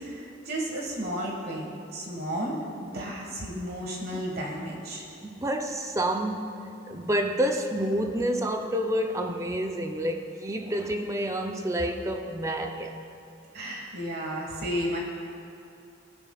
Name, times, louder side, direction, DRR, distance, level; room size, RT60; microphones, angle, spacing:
voice 1, 0.0-5.0 13.5-15.0, equal, 50° right, -1 dB, 1.5 m, -33 dB
voice 2, 5.2-6.6 6.9-12.9, equal, 15° right, 5 dB, 0.5 m, -28 dB
18.5 x 7.1 x 2.3 m, 2.7 s
head